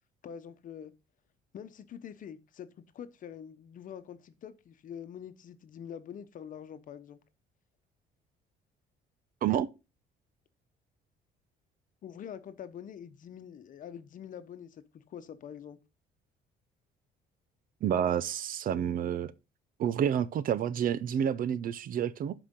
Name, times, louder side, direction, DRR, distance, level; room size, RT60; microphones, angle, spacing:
voice 1, 0.2-0.9 1.5-2.7 2.9-7.2 12.0-15.8, left 8 dB, 50° left, 1.0 m, -45 dB
voice 2, 17.8-19.3 19.8-22.3, right 9 dB, 55° right, 0.8 m, -29 dB
11.5 x 5.1 x 3.8 m
cardioid pair, 110°, 17 cm